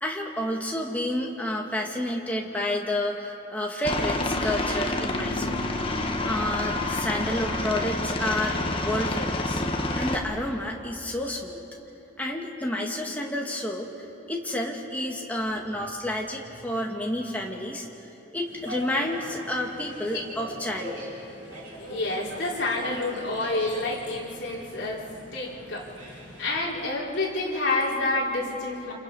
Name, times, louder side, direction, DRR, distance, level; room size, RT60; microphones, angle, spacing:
voice 1, 0.0-5.6 6.2-9.6 10.0-11.6 12.2-13.9 14.3-17.9 18.3-21.1, left 1 dB, 10° left, -1 dB, 2.0 m, -30 dB
Aircraft, 3.8-10.2, left 2 dB, 25° left, 1.4 m, -28 dB
sound 1, 18.5-26.7, equal, 75° right, 7.9 m, -42 dB
voice 2, 21.8-25.1 25.3-25.9 26.4-28.9, left 2 dB, 60° left, -4 dB, 4.0 m, -28 dB
29.5 x 27.5 x 5.5 m, 3.0 s
head